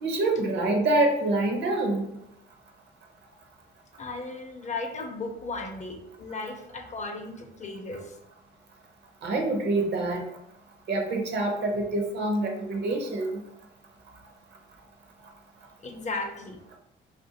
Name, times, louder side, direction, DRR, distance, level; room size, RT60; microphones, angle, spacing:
voice 1, 0.0-2.0 9.2-10.2 10.9-13.4, right 2 dB, 60° right, 3 dB, 0.7 m, -26 dB
voice 2, 4.0-8.2 15.8-16.6, left 3 dB, 35° left, 4 dB, 0.5 m, -36 dB
2.5 x 2.4 x 2.7 m, 0.83 s
cardioid pair, 90°, 20 cm